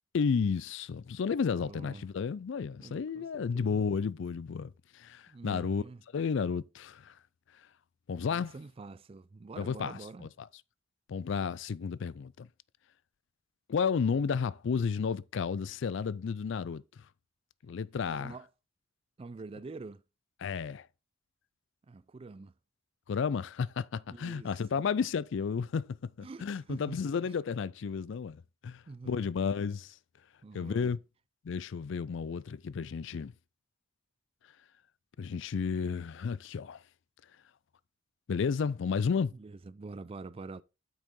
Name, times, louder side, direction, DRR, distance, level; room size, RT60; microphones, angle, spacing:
voice 1, 0.1-5.8 6.1-7.2 8.1-8.5 9.6-10.5 11.1-12.5 13.7-16.8 17.6-18.3 20.4-20.9 23.1-30.0 30.5-31.0 31.4-33.3 35.2-36.8 38.3-39.3, left 6 dB, 60° left, 0.4 m, -32 dB
voice 2, 1.6-2.1 2.8-3.8 5.3-6.0 8.3-10.3 18.1-18.5 19.2-20.0 21.9-22.6 24.1-24.8 26.2-27.3 28.9-29.3 30.4-30.9 39.3-40.6, right 3 dB, 25° right, 0.3 m, -46 dB
8.4 x 6.4 x 3.7 m
head